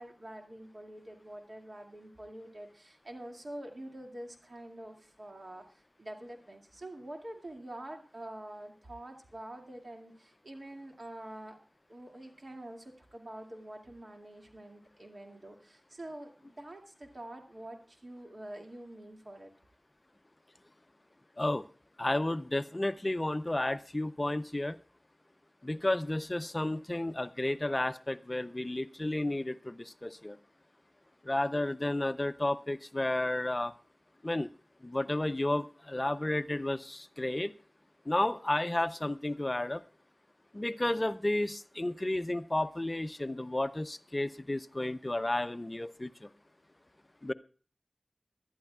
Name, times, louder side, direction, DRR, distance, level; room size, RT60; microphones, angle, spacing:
voice 1, 0.0-11.6 11.9-19.5, right 1 dB, 60° right, 2 dB, 2.3 m, -46 dB
voice 2, 22.0-24.8 25.6-30.4 31.2-33.7 34.2-34.5 34.8-37.5 38.1-39.8 40.5-46.3 47.2-47.3, left 1 dB, 35° left, 13 dB, 0.5 m, -32 dB
22.0 x 11.5 x 2.3 m, 0.39 s
wide cardioid pair, 45°, 0 cm